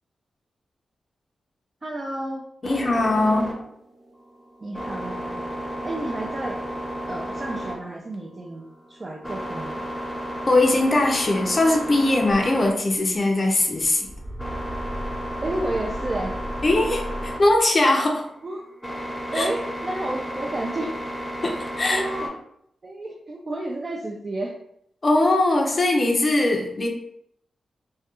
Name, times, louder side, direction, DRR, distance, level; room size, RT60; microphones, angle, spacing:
voice 1, 1.8-2.5 4.6-5.4 5.8-6.6 7.1-9.9 15.4-16.4 18.4-18.6 19.3-21.0 21.9-22.3 22.8-24.6, right 1 dB, 40° right, -1 dB, 0.4 m, -31 dB
voice 2, 2.6-3.6 10.5-14.1 16.6-18.3 19.3-19.5 21.4-22.0 25.0-26.9, left 2 dB, 45° left, 1 dB, 0.4 m, -21 dB
sound 1, 2.6-22.3, equal, 5° left, 0.7 m, -33 dB
sound 2, 12.3-12.4 12.8-13.3 13.6-17.6, equal, 70° right, 0.7 m, -36 dB
2.3 x 2.1 x 2.9 m, 0.73 s
cardioid pair, 60°, 0 cm